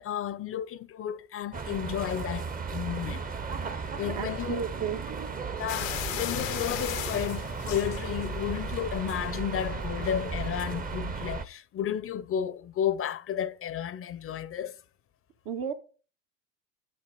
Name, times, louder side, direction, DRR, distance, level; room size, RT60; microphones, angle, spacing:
voice 1, 0.0-3.2 3.7-4.6 5.6-14.8, left 10 dB, 35° left, 0.7 m, -32 dB
sound 1, 1.5-11.5, right 4 dB, 20° right, 0.9 m, -35 dB
voice 2, 4.2-5.0 15.5-15.7, right 7 dB, 65° right, 1.8 m, -32 dB
sound 2, 5.7-8.5 8.9-9.4 10.0-10.2 10.5-10.6, left 13 dB, 85° left, 0.8 m, -36 dB
7.7 x 7.0 x 6.4 m
hypercardioid pair, 80°, 39 cm